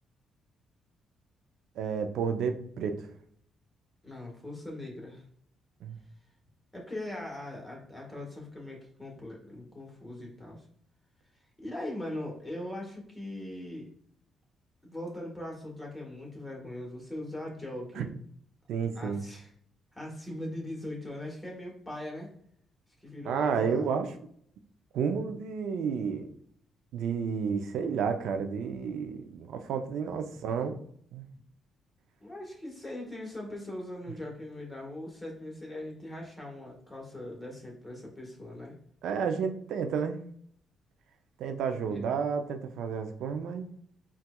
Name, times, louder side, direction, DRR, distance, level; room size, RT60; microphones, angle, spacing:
voice 1, 1.8-3.1 5.8-6.0 18.0-18.1 18.7-19.2 23.2-24.1 24.9-26.3 26.9-30.8 31.1-31.3 39.0-40.2 41.4-43.7, right 6 dB, 80° right, 7 dB, 0.3 m, -31 dB
voice 2, 4.0-5.2 6.7-10.6 11.6-13.9 14.9-18.1 18.9-19.5 19.9-22.3 23.0-23.9 32.2-38.7 41.9-42.0, left 1 dB, 15° left, -2 dB, 1.2 m, -40 dB
4.2 x 2.3 x 2.2 m, 0.63 s
cardioid pair, 90°, 0 cm